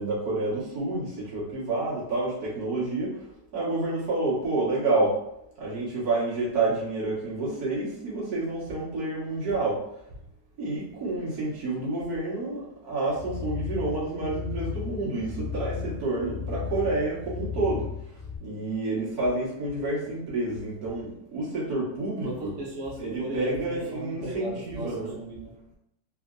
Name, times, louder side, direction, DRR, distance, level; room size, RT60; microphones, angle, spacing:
voice 1, 0.0-5.2 5.6-9.8 10.6-22.5 23.0-25.1, right 2 dB, 60° right, 1.7 m, -29 dB
sound 1, 13.1-18.4, left 7 dB, 75° left, 1.5 m, -35 dB
voice 2, 22.2-25.7, right 1 dB, 85° right, 1.4 m, -37 dB
4.1 x 2.5 x 2.4 m
omnidirectional pair, 1.9 m